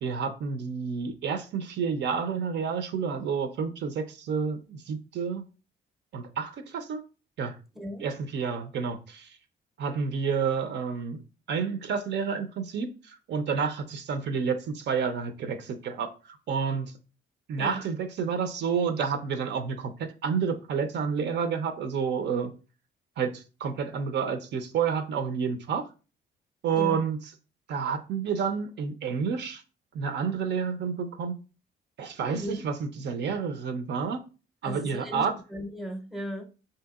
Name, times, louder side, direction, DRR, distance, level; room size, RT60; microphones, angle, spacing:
voice 1, 0.0-5.4 6.1-7.0 7.4-7.6 8.0-9.4 9.8-11.2 11.5-16.9 17.5-22.5 23.2-25.8 26.6-27.3 27.7-29.6 29.9-31.3 32.0-34.2 34.6-35.3, right 6 dB, 60° right, 0.5 m, -30 dB
voice 2, 32.2-32.6 34.6-35.2 35.5-36.4, equal, ahead, 0.6 m, -36 dB
3.4 x 2.7 x 2.3 m
cardioid pair, 90°, 20 cm